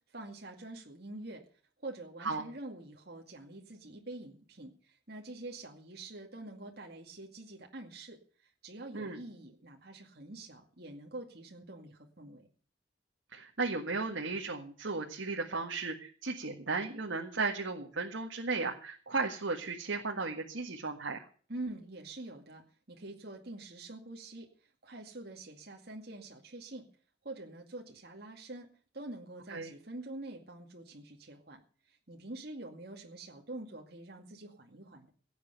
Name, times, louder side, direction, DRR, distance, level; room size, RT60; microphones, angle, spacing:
voice 1, 0.1-1.4 1.8-12.5 21.5-26.9 27.2-28.7 28.9-31.6 31.9-35.1, right 2 dB, 55° right, 1 dB, 2.3 m, -46 dB
voice 2, 13.3-21.2 29.5-29.7, right 3 dB, 85° right, 1 dB, 1.7 m, -35 dB
17.0 x 8.3 x 6.8 m, 0.43 s
head